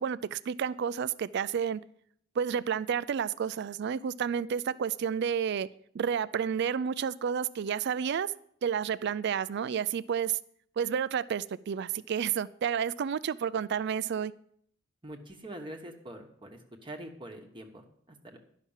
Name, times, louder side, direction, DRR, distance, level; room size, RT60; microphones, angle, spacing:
voice 1, 0.0-1.8 2.4-5.7 5.9-8.3 8.6-10.4 10.8-14.3, right 7 dB, 60° right, 0.4 m, -30 dB
voice 2, 15.0-18.4, right 1 dB, 25° right, 1.1 m, -44 dB
11.5 x 5.9 x 7.2 m
head